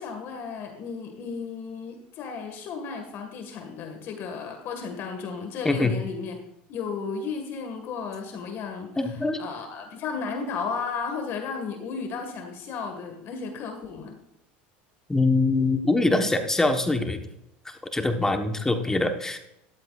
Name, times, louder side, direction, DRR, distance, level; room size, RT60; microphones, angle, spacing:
voice 1, 0.0-6.4 6.7-14.2, left 5 dB, 50° left, 4 dB, 1.8 m, -34 dB
voice 2, 9.0-9.4 15.1-17.2 17.9-19.4, left 2 dB, 10° left, 6 dB, 1.2 m, -23 dB
13.0 x 12.0 x 2.5 m, 0.83 s
supercardioid pair, 115°, 5 cm